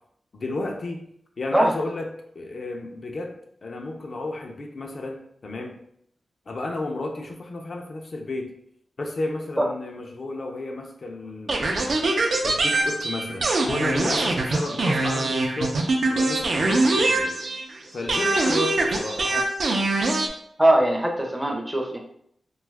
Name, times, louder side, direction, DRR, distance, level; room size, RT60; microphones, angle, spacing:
voice 1, 0.3-1.1 1.4-2.1 2.3-5.8 6.5-8.5 9.0-12.0 12.4-15.8 16.1-17.4 17.9-19.4, left 2 dB, 55° left, 2 dB, 0.5 m, -32 dB
sound 1, 11.5-17.7 18.1-20.3, right 2 dB, 65° right, 0.4 m, -23 dB
voice 2, 20.6-22.0, right 1 dB, 5° right, 1 dB, 0.5 m, -21 dB
2.7 x 2.3 x 3.2 m, 0.70 s
wide cardioid pair, 100°, 0 cm